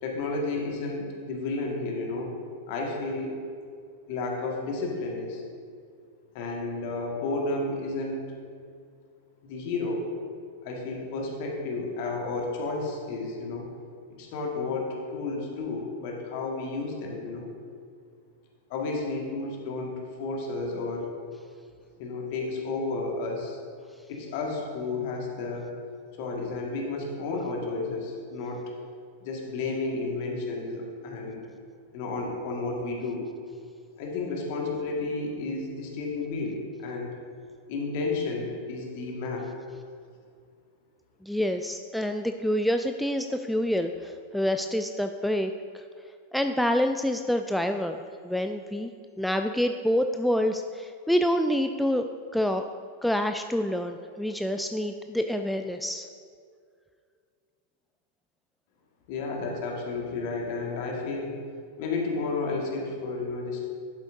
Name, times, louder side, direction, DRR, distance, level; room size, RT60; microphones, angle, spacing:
voice 1, 0.0-2.3 2.7-3.3 4.1-5.4 6.3-8.2 9.4-10.1 10.6-13.7 14.2-17.5 18.7-19.9 20.2-21.1 22.0-23.6 24.1-25.7 26.2-28.6 29.2-31.4 31.9-33.2 34.0-37.1 37.7-39.4 59.1-61.4 61.8-63.6, left 3 dB, 50° left, 0 dB, 1.7 m, -32 dB
voice 2, 41.2-45.8 46.3-48.0 48.2-48.9 49.2-52.1 52.3-52.6 53.0-56.1, equal, ahead, 6 dB, 0.3 m, -27 dB
11.5 x 8.7 x 2.6 m, 2.2 s
figure-of-eight pair, 90°, 0 cm